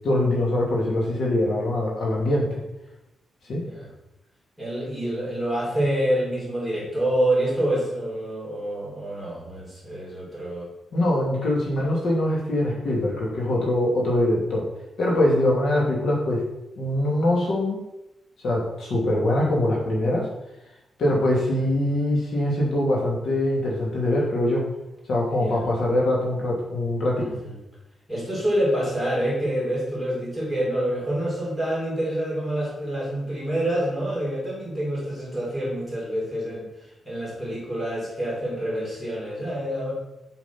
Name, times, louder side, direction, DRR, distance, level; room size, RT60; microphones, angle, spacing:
voice 1, 0.0-2.6 3.5-3.6 10.9-14.7 15.0-16.4 16.8-17.8 18.4-20.3 21.0-24.6 25.1-27.4, left 1 dB, 65° left, -3 dB, 2.6 m, -23 dB
voice 2, 3.5-3.9 4.6-10.7 25.3-25.7 27.2-27.6 28.1-36.7 37.1-39.9, right 1 dB, 5° left, -6 dB, 3.7 m, -27 dB
7.5 x 6.1 x 6.0 m, 0.92 s
wide cardioid pair, 170°, 0 cm